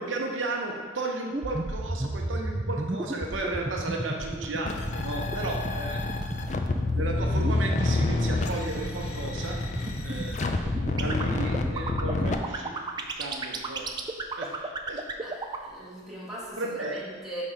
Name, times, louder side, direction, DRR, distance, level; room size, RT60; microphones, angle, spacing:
voice 1, 0.0-6.0 6.3-6.5 6.9-9.6 10.0-12.7 13.0-13.9 14.4-15.0 16.6-17.0, right 2 dB, 80° right, 0 dB, 0.8 m, -34 dB
sound 1, 1.3-15.7, right 2 dB, 20° right, 0.4 m, -31 dB
sound 2, 4.6-12.4, left 3 dB, 40° left, 0.4 m, -29 dB
Snare drum, 7.0-10.9, left 1 dB, 70° left, 1.4 m, -44 dB
voice 2, 15.2-17.4, equal, ahead, -9 dB, 1.6 m, -41 dB
5.6 x 4.2 x 4.9 m, 1.5 s
head